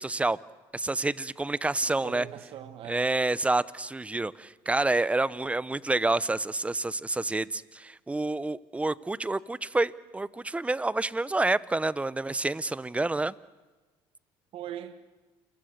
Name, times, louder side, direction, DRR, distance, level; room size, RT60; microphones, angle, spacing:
voice 1, 0.0-0.4 0.7-2.3 2.9-13.3, right 2 dB, 10° right, 18 dB, 0.7 m, -28 dB
voice 2, 1.8-3.1 14.5-15.0, right 10 dB, 60° right, 9 dB, 1.7 m, -40 dB
28.5 x 21.5 x 6.7 m, 1.3 s
supercardioid pair, 90°, 11 cm